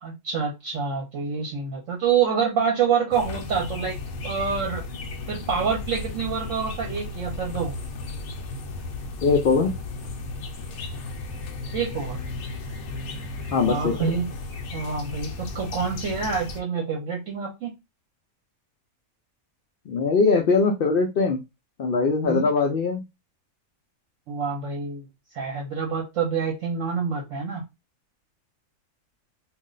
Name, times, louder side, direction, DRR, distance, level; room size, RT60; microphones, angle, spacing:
voice 1, 0.0-3.9 4.2-4.9 5.3-7.7 11.7-12.2 13.6-14.3 14.7-17.7 22.2-22.5 24.3-25.1 25.3-27.6, right 6 dB, 65° right, 1.0 m, -27 dB
sound 1, 3.1-16.6, left 3 dB, 65° left, 0.8 m, -34 dB
voice 2, 9.2-9.7 13.5-13.9 19.9-21.4 21.8-23.0, left 4 dB, 80° left, 0.5 m, -21 dB
2.5 x 2.1 x 3.7 m
omnidirectional pair, 1.5 m